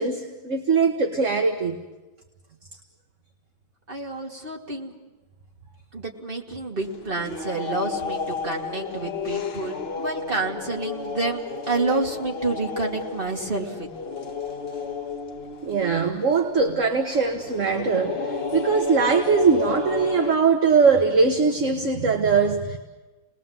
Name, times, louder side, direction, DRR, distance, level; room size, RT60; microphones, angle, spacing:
voice 1, 0.0-1.8 15.6-22.8, right 5 dB, 40° right, 4 dB, 1.5 m, -21 dB
voice 2, 3.9-4.9 5.9-13.9, right 3 dB, 25° right, 0 dB, 2.6 m, -29 dB
sound 1, 6.8-20.3, left 5 dB, 35° left, 1.1 m, -32 dB
30.0 x 20.0 x 7.3 m, 1.2 s
omnidirectional pair, 2.4 m